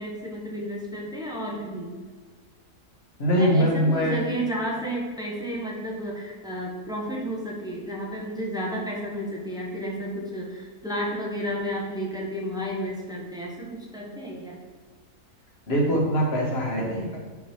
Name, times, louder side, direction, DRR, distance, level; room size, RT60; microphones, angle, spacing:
voice 1, 0.0-2.0 3.3-14.6, equal, 5° right, -4 dB, 0.9 m, -32 dB
voice 2, 3.2-4.2 15.7-17.2, equal, 45° left, -2 dB, 1.5 m, -22 dB
6.0 x 4.0 x 4.3 m, 1.5 s
omnidirectional pair, 1.6 m